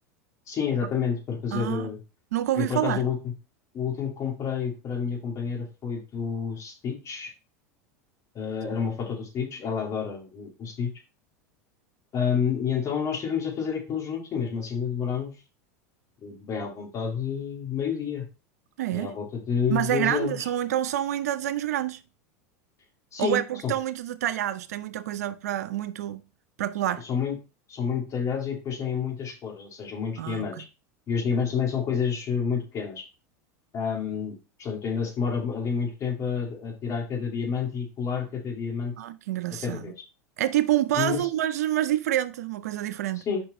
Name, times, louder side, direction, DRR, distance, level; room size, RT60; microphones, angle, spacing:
voice 1, 0.5-2.0 2.6-3.3 3.7-7.3 8.3-10.9 12.1-15.4 16.2-18.3 18.9-20.5 23.1-23.7 27.0-27.4 27.7-30.6 31.1-33.0 33.7-38.9 39.6-39.9 41.0-41.3 43.2-43.4, left 6 dB, 40° left, 2.6 m, -29 dB
voice 2, 1.5-1.9 2.3-3.0 18.8-19.1 19.7-22.0 23.2-26.2 26.6-27.0 30.2-30.6 39.0-39.9 40.4-43.2, right 13 dB, 85° right, 0.5 m, -27 dB
5.4 x 4.6 x 4.3 m
hypercardioid pair, 105°, 8 cm